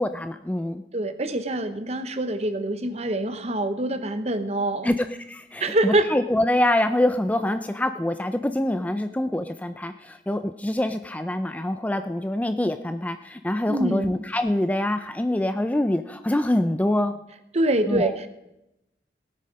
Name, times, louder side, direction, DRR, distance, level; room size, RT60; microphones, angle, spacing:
voice 1, 0.0-0.8 4.8-17.2 17.9-18.1, left 1 dB, 10° left, 9 dB, 0.4 m, -25 dB
voice 2, 0.9-4.9 5.6-6.1 13.7-14.1 17.5-18.3, right 1 dB, 35° right, 10 dB, 0.9 m, -25 dB
18.0 x 8.5 x 5.2 m, 0.90 s
head